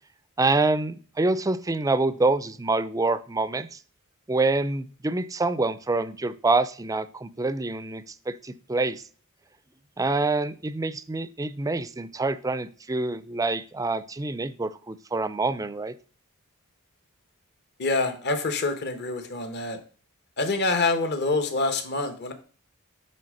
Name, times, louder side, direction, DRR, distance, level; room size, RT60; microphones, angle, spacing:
voice 1, 0.4-3.7 4.3-9.0 10.0-15.9, right 3 dB, 15° right, 14 dB, 0.4 m, -26 dB
voice 2, 17.8-19.8 20.4-22.3, left 3 dB, 50° left, 7 dB, 1.2 m, -26 dB
8.8 x 3.3 x 6.4 m, 0.41 s
head